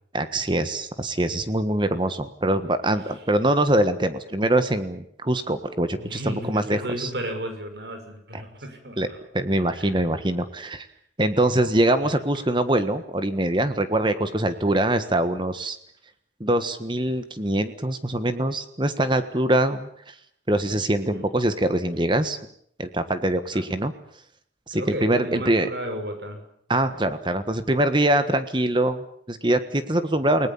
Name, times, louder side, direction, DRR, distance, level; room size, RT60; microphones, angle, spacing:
voice 1, 0.1-7.1 8.3-8.4 9.0-9.1 9.3-10.9 11.2-15.8 16.4-19.9 20.5-22.4 22.8-23.9 24.7-25.7 26.7-30.5, right 1 dB, 25° right, 10 dB, 1.4 m, -23 dB
voice 2, 6.0-9.2 9.7-10.0 12.0-12.2 21.1-21.3 23.5-23.8 24.7-26.4 26.8-27.0, equal, 65° right, 6 dB, 6.1 m, -34 dB
30.0 x 19.0 x 7.2 m, 0.66 s
head